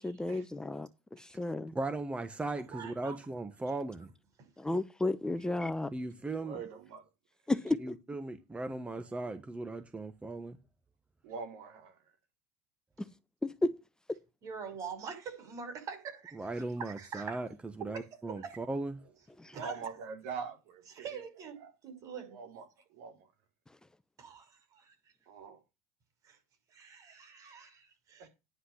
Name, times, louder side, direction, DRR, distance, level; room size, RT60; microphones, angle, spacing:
voice 1, 0.0-1.7 4.6-5.9 7.5-8.0 13.4-13.7 14.1-14.2 19.4-19.5, left 2 dB, 10° left, 0.8 m, -33 dB
voice 2, 1.7-4.1 5.9-6.6 7.8-10.6 16.4-17.5 17.8-18.9, right 2 dB, 15° right, 1.3 m, -37 dB
voice 3, 2.7-3.2 4.4-4.5 14.4-17.4 17.8-18.6 19.5-19.8 21.0-22.4 24.2-24.9 26.2-26.4 26.7-28.3, right 6 dB, 50° right, 6.3 m, -44 dB
voice 4, 6.4-7.0 11.2-12.0 19.5-21.2 21.6-21.7 22.3-22.6 22.9-23.3 25.3-25.6 28.2-28.3, right 5 dB, 75° right, 3.2 m, -43 dB
10.0 x 5.7 x 8.3 m
hypercardioid pair, 80°, 8 cm